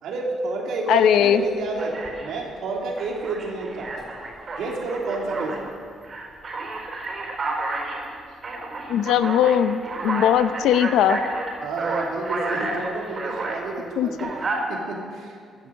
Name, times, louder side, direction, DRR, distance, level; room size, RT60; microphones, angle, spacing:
voice 1, 0.0-1.9 2.2-4.1 4.6-5.7 11.6-14.3 14.7-15.4, right 3 dB, 80° right, -1 dB, 3.0 m, -29 dB
voice 2, 0.9-1.4 8.9-11.2 14.0-14.1, left 10 dB, 85° left, 11 dB, 0.7 m, -19 dB
Alarm, 1.1-1.3 1.8-2.5 3.0-5.6 6.0-13.6 14.1-14.6, right 2 dB, 45° right, 4.7 m, -31 dB
16.0 x 11.0 x 6.5 m, 2.1 s
cardioid pair, 90°, 0 cm